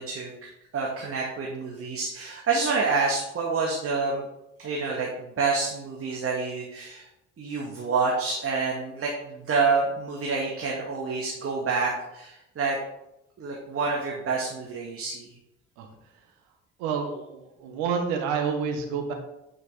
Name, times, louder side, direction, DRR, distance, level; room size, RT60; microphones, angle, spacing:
voice 1, 0.0-4.3 4.6-7.1 7.4-12.8 13.4-15.4, right 4 dB, 40° right, -2 dB, 1.9 m, -28 dB
voice 2, 16.8-19.1, right 6 dB, 65° right, 4 dB, 1.5 m, -28 dB
9.3 x 5.8 x 3.8 m, 0.88 s
figure-of-eight pair, 50°, 35 cm